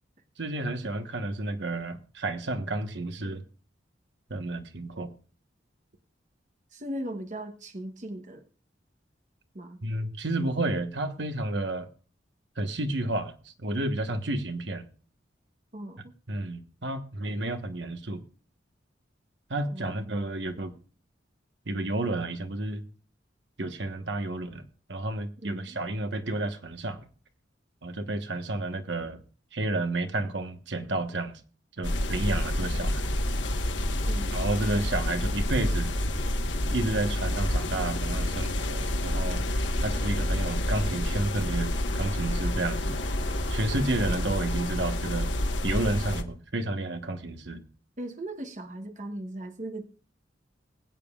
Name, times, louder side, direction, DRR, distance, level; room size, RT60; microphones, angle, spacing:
voice 1, 0.4-3.4 4.3-5.1 9.8-11.9 12.6-14.9 16.3-18.2 19.5-20.7 21.7-22.8 23.6-24.6 24.9-27.1 27.8-29.2 29.5-31.4 31.8-33.1 34.3-35.9 36.7-39.4 39.8-43.0 43.5-45.3 45.6-47.6, right 2 dB, 65° right, 8 dB, 1.2 m, -31 dB
voice 2, 6.7-8.4 9.5-9.8 15.7-16.1 19.7-20.3 25.4-25.8 34.1-34.3 48.0-49.9, right 1 dB, 40° right, 6 dB, 1.0 m, -38 dB
sound 1, 31.8-46.2, left 1 dB, 75° left, 1.3 m, -28 dB
21.0 x 9.2 x 2.4 m, 0.40 s
head